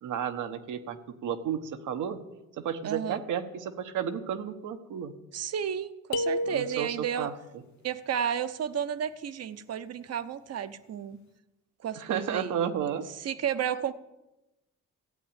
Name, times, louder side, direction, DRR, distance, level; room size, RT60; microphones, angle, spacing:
voice 1, 0.0-2.2 2.5-5.1 6.4-7.6 12.0-13.0, right 8 dB, 80° right, 8 dB, 1.3 m, -33 dB
voice 2, 2.8-3.2 5.3-7.3 7.8-11.2 11.8-12.5 13.2-13.9, right 8 dB, 55° right, 12 dB, 0.9 m, -32 dB
sound 1, 6.1-7.2, left 1 dB, 65° left, 0.9 m, -31 dB
14.5 x 8.6 x 8.9 m, 0.99 s
cardioid pair, 90°, 30 cm